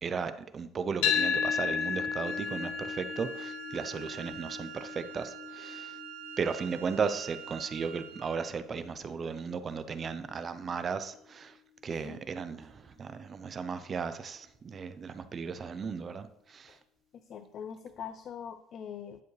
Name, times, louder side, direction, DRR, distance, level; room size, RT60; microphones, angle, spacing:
voice 1, 0.0-5.9 6.4-11.5 11.8-16.7, right 5 dB, 30° right, 11 dB, 0.5 m, -35 dB
sound 1, 1.0-9.2, left 7 dB, 80° left, 1.3 m, -35 dB
Wind instrument woodwind instrument, 2.2-8.6, right 12 dB, 80° right, 0.9 m, -46 dB
voice 2, 17.1-19.2, left 8 dB, 40° left, 10 dB, 0.4 m, -43 dB
10.5 x 6.9 x 3.2 m, 0.77 s
cardioid pair, 150°, 0 cm